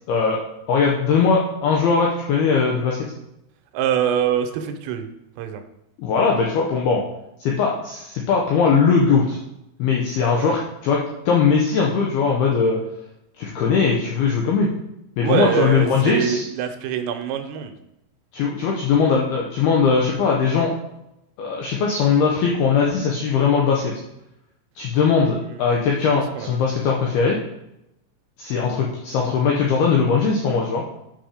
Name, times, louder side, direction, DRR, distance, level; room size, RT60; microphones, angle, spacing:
voice 1, 0.1-0.4 0.7-3.1 6.0-7.0 7.4-9.4 9.8-11.0 11.3-12.8 13.4-14.7 15.2-16.5 18.3-20.8 21.4-23.9 24.8-27.4 28.4-30.8, left 5 dB, 80° left, -1 dB, 2.2 m, -20 dB
voice 2, 3.7-5.1 5.4-5.6 10.2-10.6 15.2-17.8 25.5-25.6 26.4-26.5, right 9 dB, 85° right, 6 dB, 3.5 m, -24 dB
8.5 x 5.9 x 5.0 m, 0.87 s
omnidirectional pair, 5.7 m